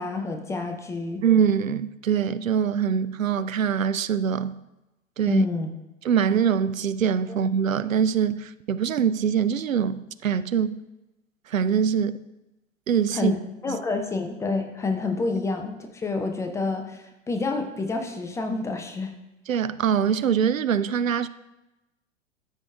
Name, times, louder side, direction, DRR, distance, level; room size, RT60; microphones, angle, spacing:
voice 1, 0.0-1.2 5.3-5.7 13.1-19.1, left 3 dB, 10° left, 0.5 m, -28 dB
voice 2, 1.2-4.6 5.2-5.5 6.0-10.8 11.5-12.2 12.9-13.3 13.7-13.8 19.5-21.3, right 7 dB, 80° right, 0.5 m, -23 dB
13.0 x 4.7 x 3.5 m
figure-of-eight pair, 100°, 39 cm